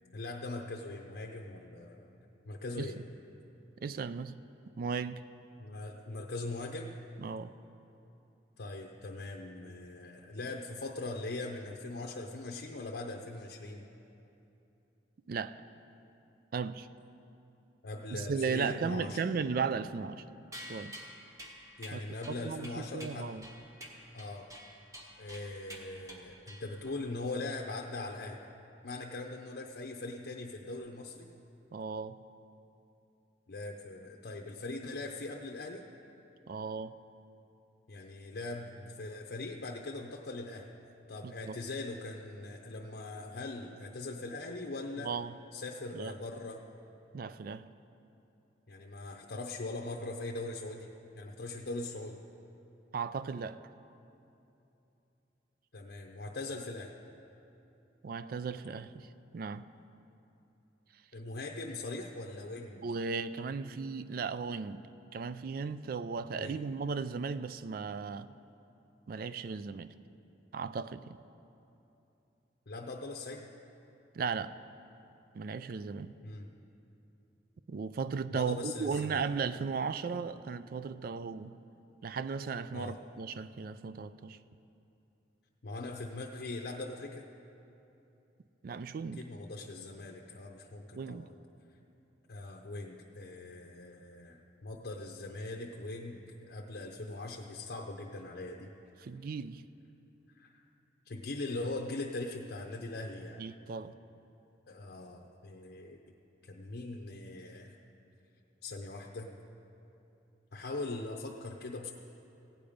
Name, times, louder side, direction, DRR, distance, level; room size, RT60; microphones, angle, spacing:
voice 1, 0.1-2.2 2.4-3.0 5.6-7.0 8.6-13.9 17.8-19.2 21.8-23.4 24.1-24.5 25.2-28.4 28.8-31.3 33.5-35.8 37.9-40.7 41.1-45.1 45.5-46.6 48.7-52.2 55.7-56.9 61.1-62.8 66.4-66.6 72.7-73.5 76.2-76.5 78.3-79.2 82.7-83.0 85.6-87.3 89.1-91.3 92.3-98.7 100.3-100.5 101.1-103.4 104.7-106.0 106.4-107.8 108.6-109.3 110.5-111.9, left 2 dB, 60° left, 1 dB, 0.7 m, -41 dB
voice 2, 3.8-4.4 4.8-5.2 7.2-7.5 15.3-15.6 16.5-16.9 18.1-20.2 20.6-21.0 21.9-22.0 22.3-23.5 31.7-32.2 36.5-36.9 41.2-41.6 45.0-45.3 45.9-46.2 47.1-47.7 52.9-53.6 58.0-59.7 62.8-64.8 65.1-68.3 69.1-69.9 70.5-71.2 74.1-74.5 75.3-76.1 77.7-81.6 82.0-84.4 88.6-89.2 90.9-91.3 99.0-99.6 103.4-104.0, right 5 dB, 50° right, 14 dB, 0.3 m, -36 dB
sound 1, 20.5-27.1, equal, 20° right, 1.2 m, -49 dB
16.0 x 8.6 x 5.1 m, 2.9 s
head